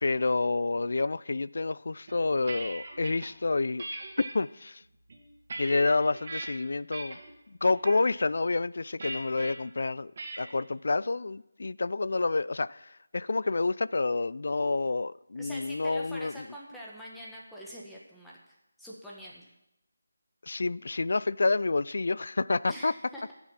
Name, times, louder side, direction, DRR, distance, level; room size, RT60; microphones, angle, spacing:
voice 1, 0.0-3.8 4.2-4.8 5.6-7.2 7.6-10.1 10.4-16.3 20.4-22.9, left 3 dB, 60° left, 0.3 m, -28 dB
sound 1, 2.1-3.3 3.8-4.3 4.9-6.5 6.9-7.3 7.6-8.0 9.0-9.5 10.2-10.5, right 2 dB, 45° right, 2.6 m, -40 dB
voice 2, 15.3-19.4 22.7-23.3, equal, 5° left, 1.6 m, -45 dB
13.5 x 7.2 x 7.3 m
figure-of-eight pair, 160°, 0 cm